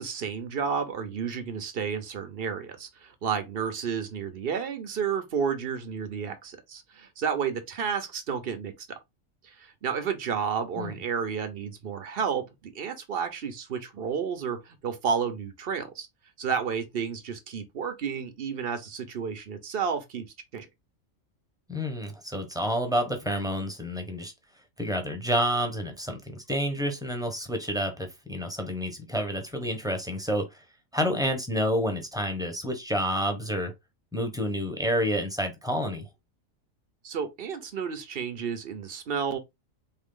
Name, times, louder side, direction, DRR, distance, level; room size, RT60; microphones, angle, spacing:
voice 1, 0.0-9.0 9.4-16.1 16.4-20.3 20.5-20.7 37.0-39.4, right 6 dB, 50° right, 1.0 m, -31 dB
voice 2, 21.7-24.3 24.8-30.6 30.9-33.7 34.1-36.1, equal, 5° right, 0.9 m, -29 dB
4.4 x 3.1 x 3.8 m
omnidirectional pair, 1.4 m